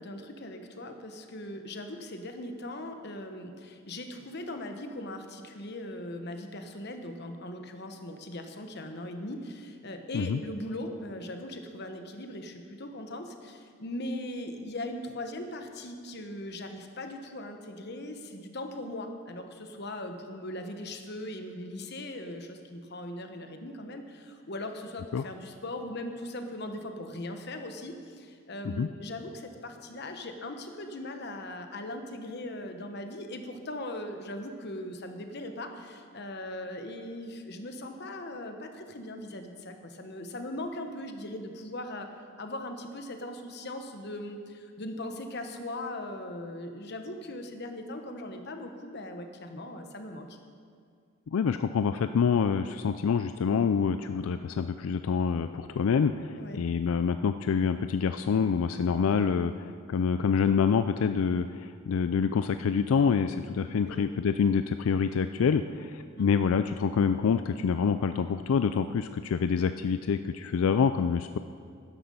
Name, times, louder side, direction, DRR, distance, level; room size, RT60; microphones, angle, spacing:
voice 1, 0.0-42.1 42.4-50.3 56.4-56.6 63.8-64.1 66.2-66.3, left 1 dB, 55° left, 5 dB, 1.1 m, -39 dB
voice 2, 51.3-71.4, left 6 dB, 90° left, 10 dB, 0.4 m, -26 dB
13.0 x 10.0 x 5.5 m, 2.2 s
head